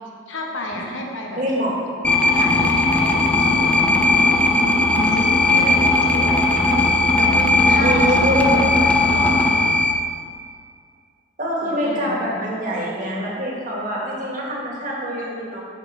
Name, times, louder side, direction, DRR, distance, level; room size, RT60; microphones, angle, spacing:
voice 1, 0.3-1.4 2.3-4.4 4.9-6.8 7.1-9.8 11.6-12.4, left 1 dB, 85° left, 0 dB, 1.1 m, -31 dB
voice 2, 1.4-1.8 7.8-8.7 11.4-15.6, equal, 40° right, -4 dB, 1.5 m, -25 dB
sound 1, 2.0-9.9, left 2 dB, 5° left, 0.4 m, -17 dB
5.7 x 5.4 x 5.4 m, 2.1 s
head